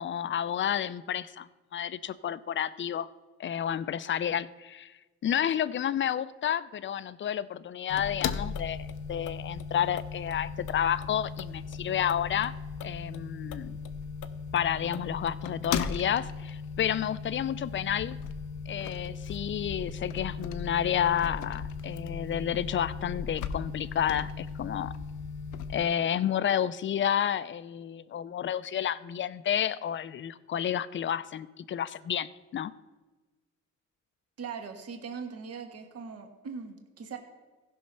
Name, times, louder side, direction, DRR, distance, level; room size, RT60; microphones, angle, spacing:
voice 1, 0.0-3.1 3.4-4.9 5.2-12.6 12.8-13.8 14.5-18.2 18.7-24.9 25.7-32.7, left 9 dB, 40° left, 17 dB, 0.5 m, -30 dB
sound 1, 7.9-25.9, left 6 dB, 85° left, 0.7 m, -37 dB
voice 2, 34.4-37.2, right 5 dB, 55° right, 4 dB, 1.4 m, -40 dB
15.5 x 5.5 x 5.5 m, 1.2 s
cardioid pair, 90°, 30 cm